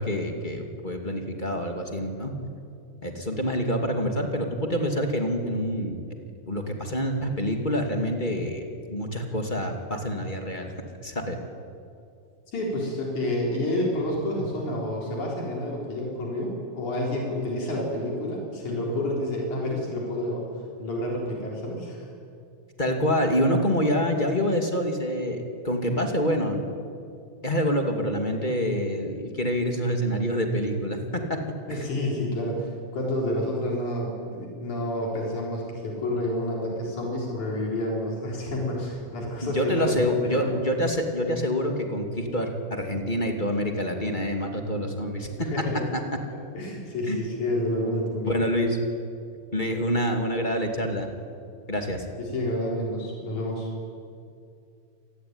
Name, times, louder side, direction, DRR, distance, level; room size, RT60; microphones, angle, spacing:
voice 1, 0.0-2.3 3.0-6.0 6.5-10.7 11.0-11.4 22.8-26.7 27.4-31.4 31.7-31.9 39.4-45.5 45.9-46.0 47.1-47.2 48.3-48.8 49.5-51.1 51.7-52.1, equal, 15° left, 3 dB, 2.4 m, -26 dB
voice 2, 12.5-22.1 31.7-40.5 45.4-45.8 46.5-48.4 52.2-53.7, left 1 dB, 85° left, -2 dB, 5.6 m, -29 dB
27.5 x 19.0 x 9.7 m, 2.4 s
omnidirectional pair, 3.3 m